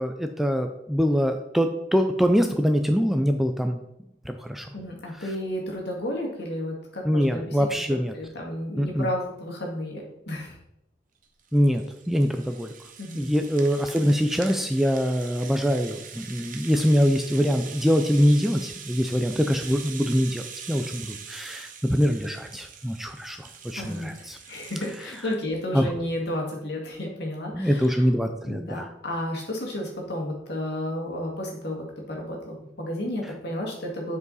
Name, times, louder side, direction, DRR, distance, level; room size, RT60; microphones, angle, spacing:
voice 1, 0.0-3.8 4.3-4.7 7.0-8.1 8.8-9.1 11.5-12.7 13.1-24.4 25.7-25.9 27.5-28.9, equal, ahead, 6 dB, 0.3 m, -24 dB
voice 2, 4.7-7.6 7.9-10.6 13.0-13.3 23.8-28.0 28.5-34.2, left 1 dB, 60° left, -1 dB, 2.0 m, -32 dB
Rattle (instrument), 11.2-25.4, right 7 dB, 45° right, 0.7 m, -43 dB
8.1 x 4.8 x 4.0 m, 0.83 s
head